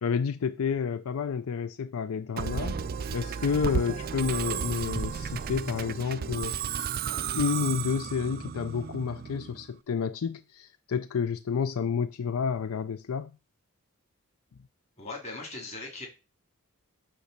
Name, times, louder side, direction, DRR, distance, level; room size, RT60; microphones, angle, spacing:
voice 1, 0.0-2.8 3.1-6.6 7.3-13.3, left 6 dB, 75° left, 0.4 m, -30 dB
Musical instrument, 2.4-9.7, right 7 dB, 40° right, 0.3 m, -33 dB
voice 2, 15.0-16.1, left 2 dB, 30° left, 2.6 m, -39 dB
8.3 x 3.2 x 6.5 m
head